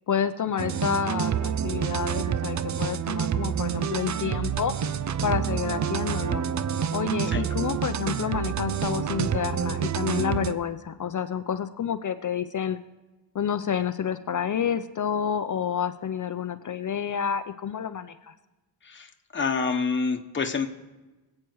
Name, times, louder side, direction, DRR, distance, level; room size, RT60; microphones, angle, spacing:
voice 1, 0.1-4.7 5.2-6.4 6.9-12.8 13.3-18.3, left 8 dB, 45° left, 10 dB, 0.6 m, -29 dB
sound 1, 0.6-10.6, right 8 dB, 45° right, 0.5 m, -28 dB
voice 2, 18.8-20.7, left 4 dB, 25° left, 3 dB, 1.2 m, -27 dB
25.0 x 8.6 x 4.7 m, 1.1 s
wide cardioid pair, 165°, 43 cm